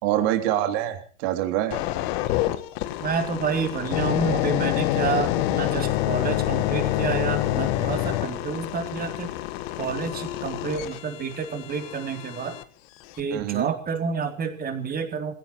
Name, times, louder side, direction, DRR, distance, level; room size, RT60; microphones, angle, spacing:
voice 1, 0.0-1.8 13.3-13.7, right 12 dB, 50° right, 6 dB, 3.3 m, -25 dB
sound 1, 1.7-12.6 13.2-13.4, left 15 dB, 50° left, 1.8 m, -27 dB
voice 2, 3.0-9.3 9.8-12.6 13.2-15.3, right 6 dB, 20° right, 6 dB, 3.7 m, -29 dB
26.5 x 17.0 x 3.2 m, 0.39 s
hypercardioid pair, 105°, 40 cm